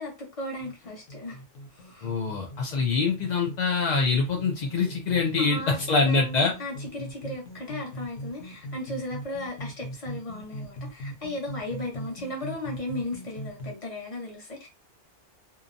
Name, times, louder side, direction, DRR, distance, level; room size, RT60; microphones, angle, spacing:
voice 1, 0.0-1.4 1.7-2.1 2.7-2.8 5.4-14.7, left 1 dB, 30° left, 0.9 m, -36 dB
sound 1, 0.6-13.7, equal, 75° left, 1.0 m, -41 dB
voice 2, 2.0-5.6 5.9-6.5, left 4 dB, 55° left, 0.4 m, -24 dB
2.8 x 2.2 x 2.5 m
omnidirectional pair, 1.3 m